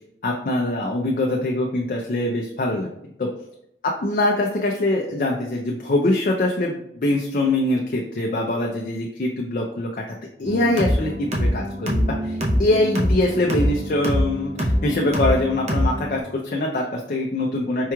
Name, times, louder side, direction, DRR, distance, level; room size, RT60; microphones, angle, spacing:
voice 1, 0.2-2.9 3.2-3.3 3.8-9.9 10.4-17.9, left 2 dB, 50° left, 0 dB, 0.4 m, -23 dB
sound 1, 10.4-16.2, equal, 40° right, 0.7 m, -24 dB
4.6 x 2.9 x 2.3 m, 0.75 s
head